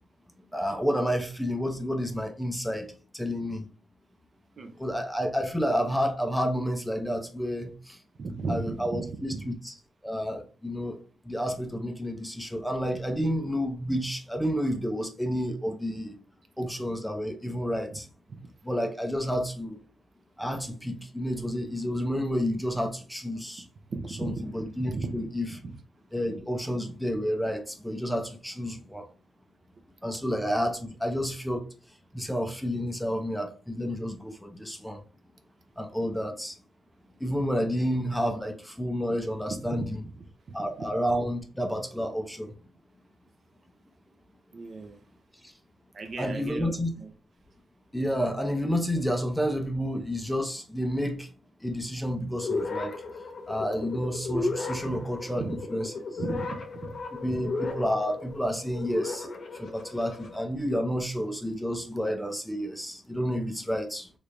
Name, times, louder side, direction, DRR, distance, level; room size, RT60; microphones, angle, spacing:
voice 1, 0.5-3.6 4.8-8.0 8.5-9.7 10.0-16.2 16.6-18.1 18.6-19.8 20.4-23.6 24.2-25.5 26.1-29.1 30.0-31.7 32.1-35.0 35.8-36.6 37.2-40.0 40.5-42.6 45.4-45.5 46.2-46.9 47.9-51.3 51.6-53.0 53.5-55.9 57.2-59.3 59.5-64.1, equal, ahead, 0.5 m, -30 dB
voice 2, 8.2-9.5 17.9-18.0 18.3-18.4 23.9-24.5 24.9-25.2 25.5-25.8 39.2-40.9 44.5-45.0 45.9-47.1 54.8-55.0 55.3-55.7 56.2-57.3, right 3 dB, 45° right, 0.5 m, -36 dB
sound 1, 52.4-60.4, left 3 dB, 55° left, 0.8 m, -35 dB
3.2 x 3.2 x 2.5 m
wide cardioid pair, 130°, 0 cm